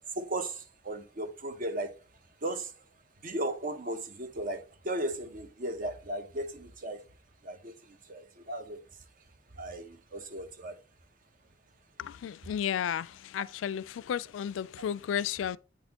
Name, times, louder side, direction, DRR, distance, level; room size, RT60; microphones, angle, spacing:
voice 1, 0.2-1.9 2.4-2.7 3.2-7.0 7.4-7.7 8.1-8.8 9.6-10.8, right 1 dB, 45° right, 0.7 m, -36 dB
voice 2, 12.0-15.6, left 9 dB, 80° left, 0.3 m, -33 dB
8.5 x 4.2 x 2.9 m
head